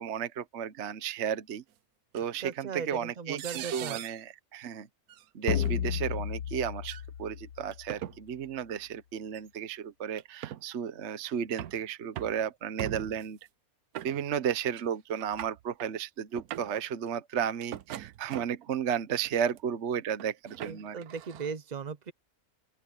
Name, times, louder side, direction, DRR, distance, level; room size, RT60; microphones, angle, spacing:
voice 1, 0.0-1.6 2.1-4.9 5.3-13.4 14.0-21.0, right 8 dB, 55° right, 1.1 m, -33 dB
sound 1, 2.1-2.2 3.4-4.2 5.1-5.2 5.6-5.8 6.8-7.0 7.7-8.2 9.3-9.5 10.2-10.6 11.2-11.8 12.2-12.4 12.8-13.3 13.9-14.5 14.8-14.9 15.1-15.9 16.3-16.8 17.6-18.7 19.2-19.6 20.2-21.5, right 12 dB, 75° right, 1.2 m, -41 dB
voice 2, 2.4-4.0 20.6-22.1, right 6 dB, 40° right, 0.7 m, -38 dB
sound 2, 5.5-8.1, left 9 dB, 90° left, 1.6 m, -33 dB
open air
omnidirectional pair, 1.6 m